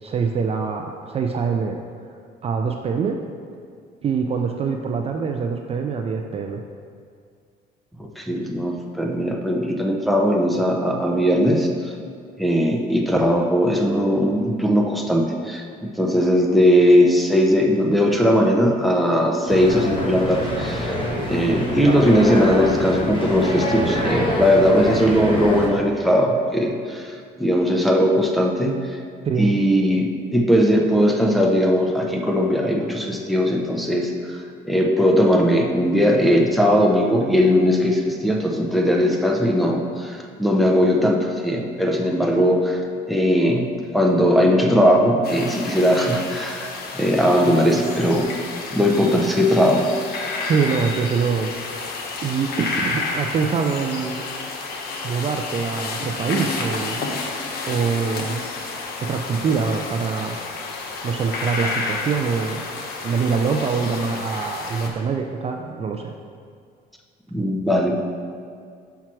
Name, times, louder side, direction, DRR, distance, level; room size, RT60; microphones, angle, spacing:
voice 1, 0.0-1.8 2.4-3.2 4.0-6.6 29.2-29.6 50.4-51.5 52.2-54.2 55.0-57.0 57.7-58.6 59.0-60.4 61.0-62.6 63.0-66.1, right 5 dB, 35° right, 3 dB, 0.4 m, -24 dB
voice 2, 8.0-11.9 12.4-21.0 21.3-29.0 29.4-34.4 34.6-42.8 43.1-43.7 43.9-46.7 46.9-48.3 48.7-49.8 67.3-68.0, equal, ahead, 0 dB, 0.8 m, -19 dB
sound 1, 19.5-25.7, left 1 dB, 30° left, 1.4 m, -25 dB
sound 2, 45.2-64.9, left 3 dB, 65° left, 1.0 m, -30 dB
5.8 x 4.6 x 6.0 m, 2.2 s
cardioid pair, 110°, 17 cm